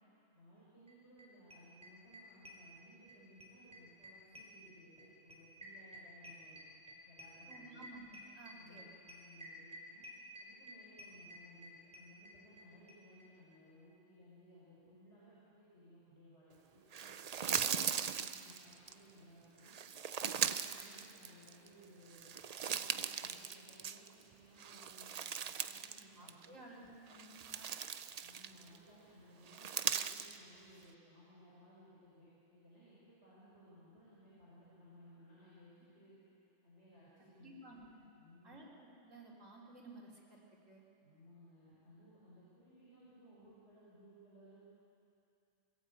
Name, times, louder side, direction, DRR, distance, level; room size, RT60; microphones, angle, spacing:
voice 1, 0.3-6.6 7.0-7.8 8.5-10.0 10.4-17.1 17.6-17.9 18.2-19.8 20.2-25.1 25.4-26.6 27.1-27.4 28.2-36.1 36.6-37.8 38.1-38.6 41.0-44.6, equal, 60° left, -9 dB, 5.8 m, -61 dB
sound 1, 0.9-1.0 1.2-1.3 1.5-3.1 3.4-12.6 12.9-13.0 13.2-13.3 13.5-13.6, equal, 5° right, 4.5 m, -52 dB
voice 2, 7.5-8.8 17.6-17.9 26.2-27.7 37.4-38.1 38.4-40.8, right 1 dB, 75° right, -3 dB, 3.7 m, -55 dB
sound 2, 16.9-18.9 19.6-21.7 22.1-24.2 24.6-26.0 26.3-26.5 27.1-28.8 29.5-30.4, right 7 dB, 55° right, 0.4 m, -39 dB
23.0 x 16.5 x 8.6 m, 2.7 s
omnidirectional pair, 1.3 m